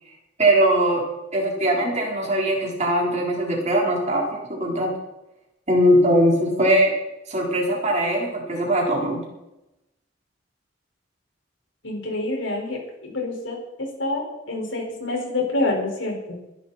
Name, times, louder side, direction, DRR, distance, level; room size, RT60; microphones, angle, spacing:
voice 1, 0.4-1.0 1.3-4.9 5.7-6.9 7.3-9.2, right 1 dB, 35° right, -2 dB, 4.5 m, -20 dB
voice 2, 11.8-16.4, left 2 dB, 90° left, 0 dB, 5.8 m, -27 dB
21.5 x 11.5 x 4.5 m, 0.92 s
head